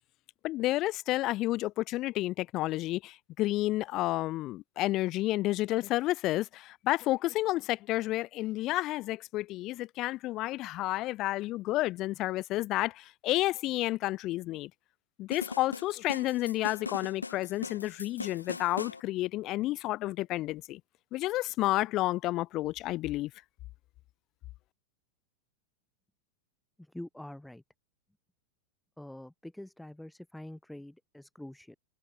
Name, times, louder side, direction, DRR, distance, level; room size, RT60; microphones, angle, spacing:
voice 1, 0.4-14.7 15.2-20.8 21.1-23.3, left 17 dB, 35° left, 0.4 m, -31 dB
sound 1, 15.3-19.0, left 3 dB, 80° left, 2.3 m, -40 dB
voice 2, 26.8-27.6 29.0-31.8, left 1 dB, 5° left, 1.4 m, -45 dB
figure-of-eight pair, 90°, 0 cm